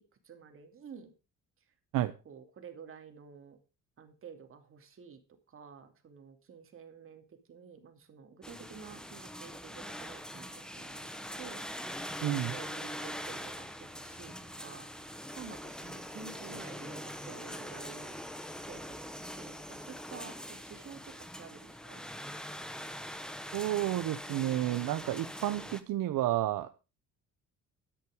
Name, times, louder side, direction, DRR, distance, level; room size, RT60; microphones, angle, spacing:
voice 1, 0.2-1.1 2.2-3.6 4.0-5.2 5.5-12.2 12.5-18.1 18.6-22.4, right 6 dB, 40° right, 6 dB, 2.8 m, -51 dB
sound 1, 8.4-25.8, equal, ahead, 1.3 m, -43 dB
voice 2, 12.2-12.6 23.5-26.8, right 13 dB, 80° right, 9 dB, 1.0 m, -31 dB
13.0 x 10.5 x 5.0 m, 0.30 s
cardioid pair, 155°, 32 cm